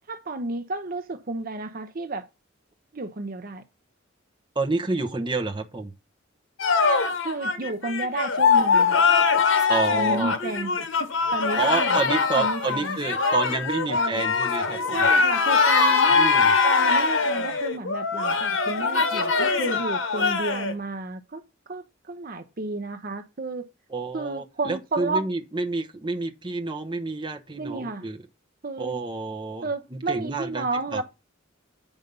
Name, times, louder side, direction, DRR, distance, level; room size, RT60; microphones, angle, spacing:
voice 1, 0.1-2.3 2.9-3.6 7.2-9.0 9.9-10.7 11.0-12.0 12.3-13.0 13.9-14.2 14.9-21.4 21.7-23.7 24.1-25.3 27.6-28.1 28.6-29.0 29.6-31.0, right 2 dB, 45° right, 0.8 m, -32 dB
voice 2, 4.5-5.9 9.7-10.4 11.6-15.1 16.1-16.6 20.2-20.3 23.9-28.2 28.8-31.0, right 3 dB, 25° right, 0.9 m, -29 dB
sound 1, 6.6-20.7, left 5 dB, 80° left, 1.3 m, -22 dB
8.1 x 5.3 x 5.3 m
head